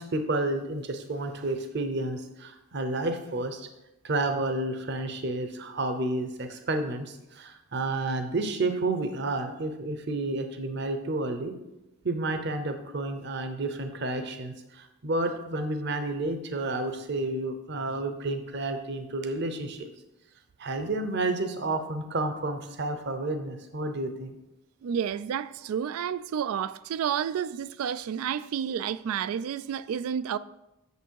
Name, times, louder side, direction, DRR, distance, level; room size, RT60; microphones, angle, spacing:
voice 1, 0.0-3.7 4.0-11.5 12.0-19.9 20.6-24.4, right 2 dB, 55° right, 0.8 m, -30 dB
voice 2, 24.8-30.4, right 8 dB, 90° right, 0.3 m, -30 dB
8.3 x 6.8 x 4.6 m
head